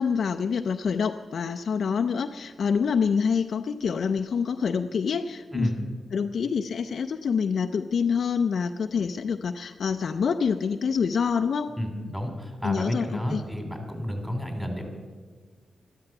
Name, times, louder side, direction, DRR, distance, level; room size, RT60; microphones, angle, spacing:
voice 1, 0.0-5.7 6.1-11.8 12.6-13.4, left 6 dB, 70° left, 6 dB, 0.5 m, -26 dB
voice 2, 11.8-14.9, equal, 5° right, 4 dB, 3.1 m, -31 dB
12.5 x 12.0 x 5.9 m, 1.5 s
cardioid pair, 60°, 0 cm